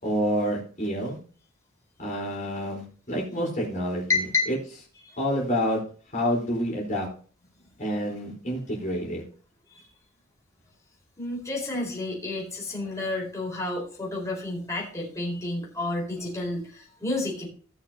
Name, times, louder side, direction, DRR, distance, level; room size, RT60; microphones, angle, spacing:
voice 1, 0.0-1.2 2.0-4.6 5.2-5.8 6.1-7.1 7.8-9.2, equal, 40° left, -2 dB, 4.4 m, -28 dB
voice 2, 4.1-4.5 5.0-5.2 9.7-9.9 11.2-17.5, left 2 dB, 15° left, -3 dB, 4.6 m, -30 dB
18.0 x 6.8 x 2.9 m, 0.41 s
head